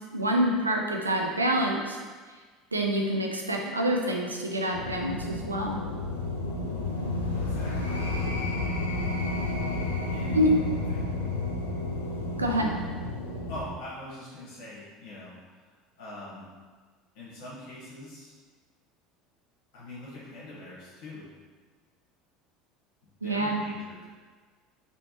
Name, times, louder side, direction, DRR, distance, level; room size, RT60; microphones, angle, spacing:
voice 1, 0.1-2.0 2.7-5.8 10.3-10.5 12.4-12.7 23.2-23.6, equal, 90° right, 1 dB, 0.3 m, -27 dB
sound 1, 4.7-13.6, left 2 dB, 85° left, 0.4 m, -31 dB
voice 2, 7.3-7.9 10.1-10.4 10.9-11.1 13.5-15.3 16.0-16.5 17.1-18.3 19.7-21.3 23.2-24.0, left 1 dB, 65° left, -8 dB, 1.0 m, -43 dB
3.3 x 2.7 x 2.8 m, 1.5 s
figure-of-eight pair, 70°, 0 cm